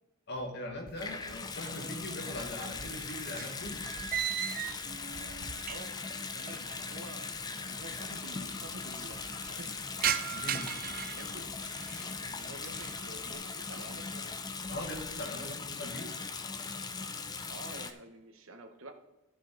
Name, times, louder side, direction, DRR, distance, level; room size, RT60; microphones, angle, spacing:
voice 1, 0.3-3.9 10.3-10.7 14.7-16.2, left 1 dB, 50° left, 3 dB, 1.6 m, -40 dB
sound 1, 0.9-1.7 2.0-6.1 6.4-6.5 7.4-7.5 7.6-7.7 8.0-8.5 8.9-12.1 12.5-13.1 13.5-13.9 14.3-15.2, right 9 dB, 40° right, 0.5 m, -38 dB
Water tap faucet / Sink (filling or washing) / Bathtub (filling or washing), 1.0-17.9, left 4 dB, 20° left, 0.4 m, -40 dB
voice 2, 1.8-2.2 5.7-7.3 7.5-9.7 10.5-10.7 11.0-11.5 12.3-14.4 17.5-18.9, right 2 dB, 65° right, 6 dB, 1.0 m, -49 dB
Wind / Boat Water vehicle, 7.3-13.3, left 2 dB, 35° left, 0.8 m, -54 dB
15.0 x 5.4 x 3.9 m, 1.0 s
head